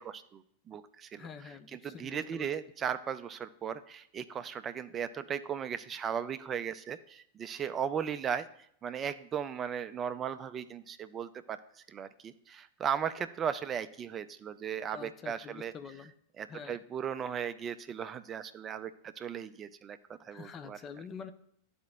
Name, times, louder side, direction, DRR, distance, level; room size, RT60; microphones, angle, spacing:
voice 1, 0.0-8.5 8.8-11.6 11.9-15.7 16.4-20.0 20.2-20.8, right 8 dB, 25° right, 11 dB, 0.4 m, -37 dB
voice 2, 1.2-2.5 14.9-16.1 16.5-16.8 20.3-21.3, left 6 dB, 25° left, 9 dB, 0.5 m, -46 dB
12.0 x 4.3 x 2.3 m, 0.71 s
figure-of-eight pair, 90°, 0 cm